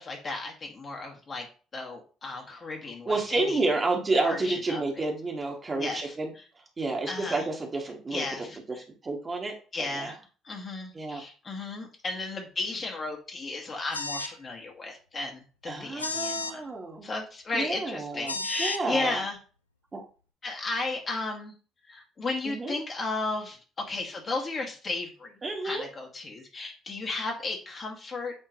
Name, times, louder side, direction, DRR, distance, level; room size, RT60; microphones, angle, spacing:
voice 1, 0.0-1.5 1.7-3.7 4.2-5.1 5.8-6.1 7.1-7.5 8.1-8.8 9.7-10.2 10.4-16.6 17.0-19.4 20.4-21.5 21.9-25.3 25.6-28.3, left 3 dB, 40° left, 1 dB, 2.0 m, -34 dB
voice 2, 3.0-6.3 6.8-8.5 9.0-9.5 9.8-10.1 10.9-11.2 15.7-17.1 17.5-19.2 19.9-20.0 22.4-22.8 25.4-25.9, right 3 dB, 30° right, 1 dB, 1.8 m, -30 dB
sound 1, 13.9-14.4 16.0-16.5 18.3-18.8, left 3 dB, 90° left, 0.4 m, -33 dB
8.7 x 3.8 x 3.1 m, 0.37 s
figure-of-eight pair, 50°, 0 cm